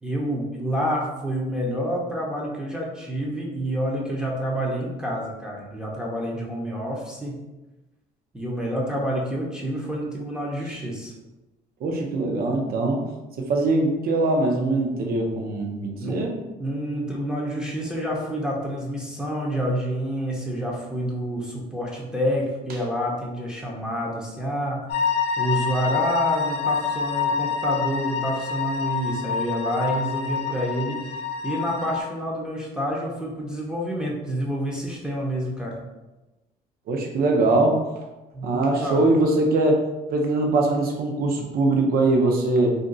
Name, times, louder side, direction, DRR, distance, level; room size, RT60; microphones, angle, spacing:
voice 1, 0.0-7.4 8.3-11.1 16.0-16.2 16.6-24.8 25.4-31.0 31.4-35.8 38.3-39.0, equal, 5° right, -4 dB, 0.6 m, -28 dB
voice 2, 11.8-13.0 13.4-16.3 36.9-37.8 38.4-42.8, right 2 dB, 60° right, 1 dB, 0.7 m, -22 dB
sound 1, 24.9-32.0, left 6 dB, 85° left, 0.6 m, -27 dB
2.5 x 2.2 x 3.8 m, 1.1 s
cardioid pair, 110°, 17 cm